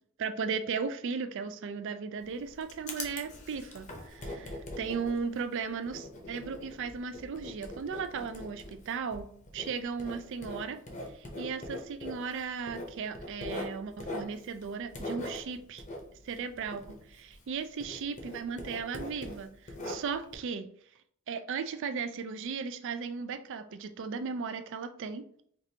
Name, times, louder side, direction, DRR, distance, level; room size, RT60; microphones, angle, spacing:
voice 1, 0.2-9.3 9.5-10.8 11.4-15.8 16.2-16.8 17.1-19.5 19.8-20.7 21.3-25.3, right 5 dB, 55° right, 10 dB, 0.4 m, -36 dB
Writing, 2.2-17.5 17.8-20.4, left 1 dB, 35° left, 0.7 m, -42 dB
4.6 x 2.5 x 2.8 m, 0.62 s
head